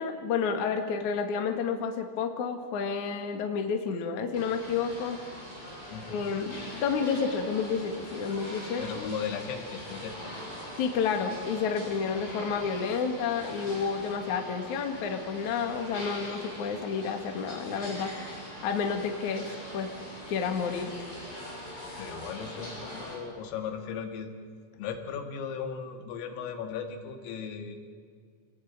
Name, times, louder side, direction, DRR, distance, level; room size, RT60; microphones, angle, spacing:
voice 1, 0.0-5.2 6.0-9.1 10.8-18.1 18.6-19.5 19.7-19.9 20.3-20.9, left 6 dB, 50° left, 4 dB, 2.6 m, -30 dB
sound 1, 4.3-23.1, left 1 dB, 15° left, 7.9 m, -42 dB
voice 2, 5.9-6.2 8.8-10.4 12.1-12.2 22.0-24.3 24.8-27.8, left 7 dB, 75° left, 5 dB, 4.5 m, -37 dB
28.0 x 19.5 x 8.9 m, 2.1 s
omnidirectional pair, 6.0 m